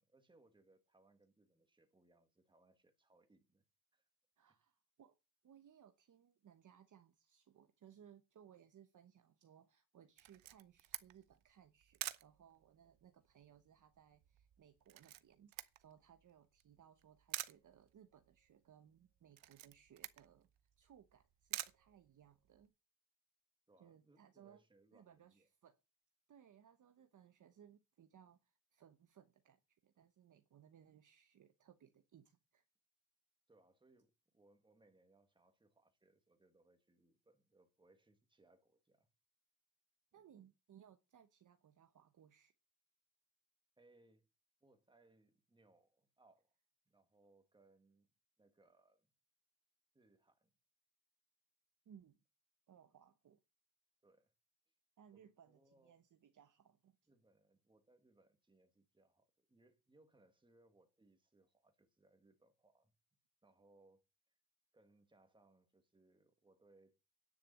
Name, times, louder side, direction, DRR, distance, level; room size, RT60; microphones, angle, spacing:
voice 1, 0.0-3.6 3.9-4.1 4.4-4.6 23.7-25.5 33.5-39.1 40.2-40.3 43.8-44.3 44.6-46.6 46.9-48.1 48.4-49.1 49.9-50.5 54.0-54.3 55.1-56.0 57.1-62.9 63.4-64.4 64.7-67.0, right 2 dB, 10° right, 1.8 m, -71 dB
voice 2, 4.4-5.2 5.4-20.5 20.8-22.7 23.8-24.6 24.9-25.8 26.3-32.6 40.1-42.5 51.9-52.2 52.7-53.4 55.0-57.0, right 9 dB, 40° right, 1.0 m, -64 dB
Camera, 10.2-22.7, right 15 dB, 85° right, 1.0 m, -50 dB
9.9 x 6.8 x 8.5 m
cardioid pair, 175°, 46 cm